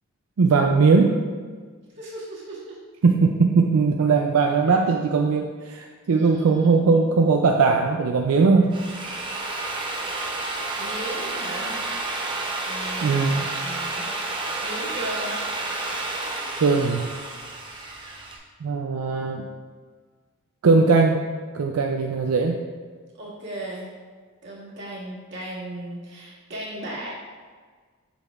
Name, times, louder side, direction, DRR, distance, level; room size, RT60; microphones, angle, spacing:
voice 1, 0.4-1.2 3.0-8.7 13.0-13.5 16.6-17.0 18.6-19.5 20.6-21.2 21.5-22.6, right 4 dB, 85° right, 2 dB, 0.4 m, -19 dB
voice 2, 2.0-2.8 4.7-4.8 6.1-7.0 10.7-11.8 12.7-14.1 14.6-15.4 23.2-23.9 24.4-27.2, right 1 dB, 55° right, -6 dB, 1.9 m, -36 dB
Drill, 8.5-18.4, right 2 dB, 20° right, 0.7 m, -30 dB
8.0 x 6.4 x 2.4 m, 1.5 s
head